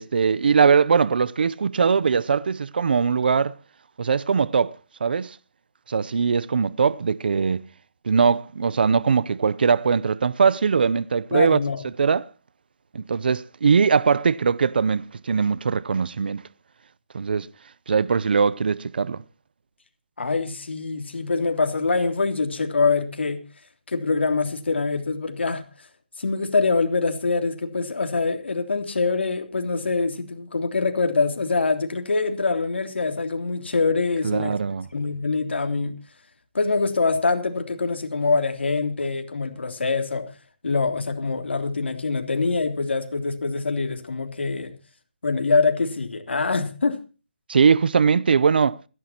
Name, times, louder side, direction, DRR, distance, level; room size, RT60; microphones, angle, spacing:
voice 1, 0.0-3.5 4.0-4.7 5.0-5.4 5.9-7.7 8.0-11.6 12.0-12.3 12.9-16.4 17.1-17.5 17.9-19.2 34.2-34.9 47.5-48.8, right 5 dB, 60° right, 0.6 m, -21 dB
voice 2, 11.3-11.8 20.2-23.4 23.9-25.9 26.2-34.6 34.9-35.9 36.5-40.3 40.6-44.7 45.2-47.0, left 4 dB, 85° left, 3.3 m, -24 dB
28.5 x 11.0 x 2.9 m
hypercardioid pair, 170°, 6 cm